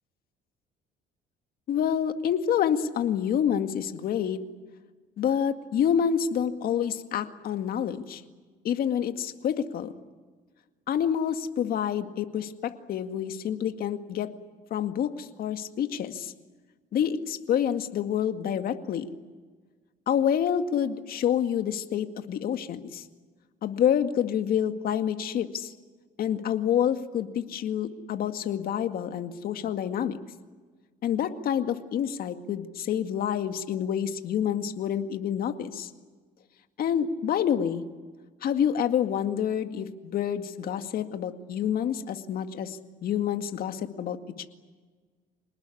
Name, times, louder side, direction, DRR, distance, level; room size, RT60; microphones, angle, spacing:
voice 1, 1.7-4.4 5.2-8.2 8.6-9.9 10.9-14.3 14.7-16.3 16.9-19.1 20.1-23.0 23.6-25.7 26.2-30.2 31.0-35.9 36.8-37.8 38.4-44.2, left 9 dB, 60° left, 8 dB, 2.1 m, -28 dB
27.0 x 19.5 x 9.9 m, 1.4 s
cardioid pair, 110°, 17 cm